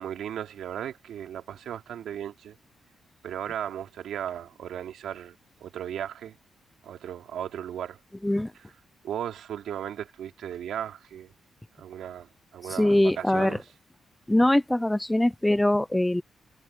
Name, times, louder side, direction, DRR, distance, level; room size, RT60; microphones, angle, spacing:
voice 1, 0.0-2.6 3.2-5.3 5.6-6.4 6.8-8.0 9.0-11.3 11.8-13.6, right 10 dB, 80° right, 3.0 m, -36 dB
voice 2, 12.7-13.6 14.3-16.2, left 1 dB, 5° left, 0.6 m, -22 dB
wide cardioid pair, 160°, 0 cm